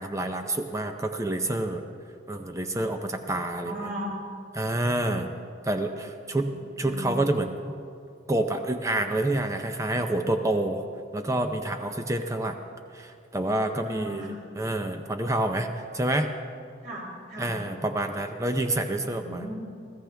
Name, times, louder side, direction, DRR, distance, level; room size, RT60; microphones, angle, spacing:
voice 1, 0.0-1.8 2.3-3.9 4.6-5.3 5.6-7.8 8.3-10.8 11.1-12.6 12.9-15.7 15.9-16.3 17.4-19.4, right 1 dB, 15° right, 6 dB, 0.6 m, -28 dB
voice 2, 3.6-4.1 6.2-6.5 6.8-7.1 13.8-14.4 16.8-17.6 19.0-19.5, equal, 45° right, -2 dB, 3.3 m, -37 dB
23.5 x 15.0 x 3.4 m, 2.4 s
head